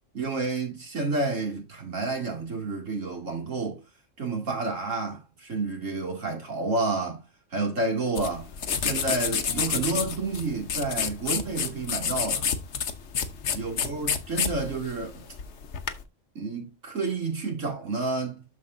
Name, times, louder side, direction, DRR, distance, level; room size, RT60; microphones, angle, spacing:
voice 1, 0.1-3.8 4.2-7.2 7.5-8.5 8.8-12.5 13.5-15.2 16.3-18.4, right 3 dB, 85° right, 3.0 m, -30 dB
sound 1, 8.2-16.0, left 7 dB, 65° left, 1.2 m, -29 dB
12.5 x 5.1 x 2.6 m
omnidirectional pair, 1.3 m